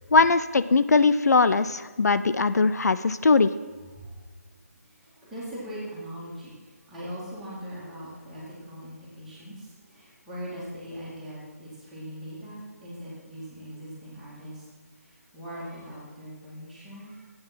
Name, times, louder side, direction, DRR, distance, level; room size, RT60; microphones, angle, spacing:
voice 1, 0.1-3.5, left 4 dB, 75° left, 13 dB, 0.5 m, -20 dB
voice 2, 4.8-14.7 15.0-17.3, equal, ahead, -11 dB, 2.4 m, -41 dB
13.0 x 8.9 x 6.0 m, 1.3 s
hypercardioid pair, 175°, 9 cm